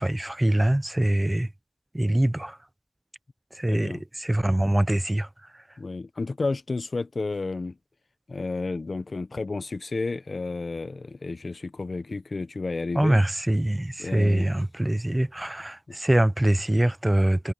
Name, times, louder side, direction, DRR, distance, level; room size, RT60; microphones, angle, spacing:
voice 1, 0.0-1.5 1.9-2.6 3.5-5.3 13.0-17.5, right 1 dB, 20° right, 0.8 m, -24 dB
voice 2, 3.7-4.0 5.8-7.8 8.3-13.2 14.0-14.5 15.9-16.0, left 3 dB, 70° left, 0.9 m, -31 dB
wide cardioid pair, 70°, 0 cm